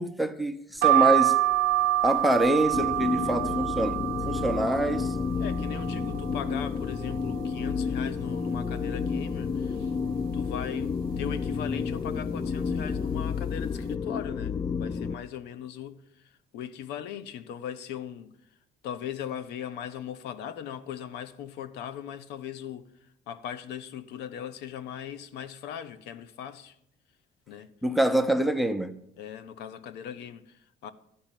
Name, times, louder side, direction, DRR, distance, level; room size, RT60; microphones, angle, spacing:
voice 1, 0.0-1.3 2.0-5.2 27.8-28.9, right 1 dB, ahead, 0.8 m, -25 dB
voice 2, 0.8-1.1 5.4-9.9 10.3-18.3 18.8-26.8 27.5-27.7 29.2-30.9, left 9 dB, 85° left, 0.8 m, -39 dB
sound 1, 0.8-6.5 6.9-7.7 8.1-8.2 8.4-9.5 10.0-10.4 11.1-11.5 12.2-12.5 12.7-12.9, right 14 dB, 60° right, 0.7 m, -27 dB
sound 2, 2.7-15.2, left 5 dB, 25° left, 0.4 m, -31 dB
12.0 x 5.5 x 8.9 m
cardioid pair, 110°, 17 cm